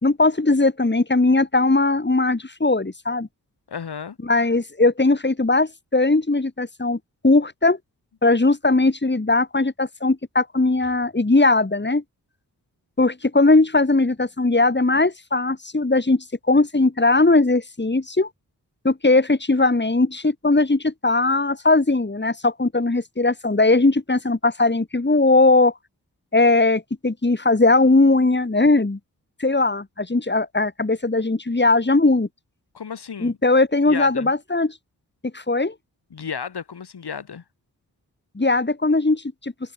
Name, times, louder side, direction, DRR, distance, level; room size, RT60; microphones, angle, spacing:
voice 1, 0.0-3.3 4.2-7.0 7.2-7.8 8.2-12.0 13.0-18.3 18.8-25.7 26.3-29.0 29.4-32.3 33.2-34.8 35.3-35.7 38.4-39.5, left 2 dB, 25° left, 4.1 m, -19 dB
voice 2, 3.7-4.2 32.7-33.4 33.9-34.3 36.1-37.4, left 6 dB, 70° left, 6.3 m, -33 dB
cardioid pair, 40°, 40 cm